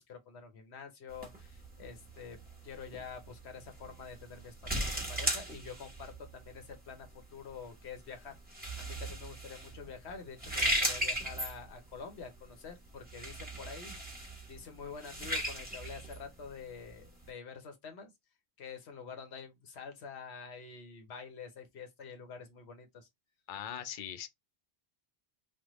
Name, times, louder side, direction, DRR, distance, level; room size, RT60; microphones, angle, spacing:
voice 1, 0.0-2.4 2.6-14.2 14.5-18.1 18.6-23.1, left 5 dB, 90° left, 1.1 m, -47 dB
sound 1, 1.1-17.3, right 1 dB, 10° right, 0.9 m, -38 dB
voice 2, 23.5-24.3, left 9 dB, 60° left, 0.6 m, -40 dB
3.3 x 2.2 x 2.9 m
omnidirectional pair, 1.1 m